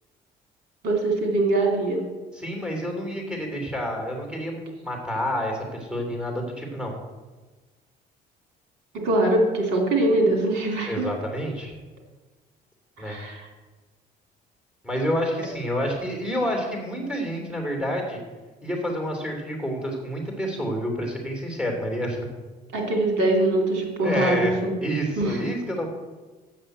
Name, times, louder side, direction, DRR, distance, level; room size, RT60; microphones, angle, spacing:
voice 1, 0.8-2.0 9.0-11.1 13.0-13.5 22.7-24.7 25.2-25.4, right 2 dB, 90° right, 1 dB, 2.6 m, -23 dB
voice 2, 2.3-6.9 10.9-11.8 13.0-13.2 14.8-18.2 18.6-22.2 24.0-24.5 24.8-25.9, equal, 5° right, 1 dB, 2.9 m, -28 dB
7.7 x 7.1 x 7.8 m, 1.3 s
cardioid pair, 110°, 17 cm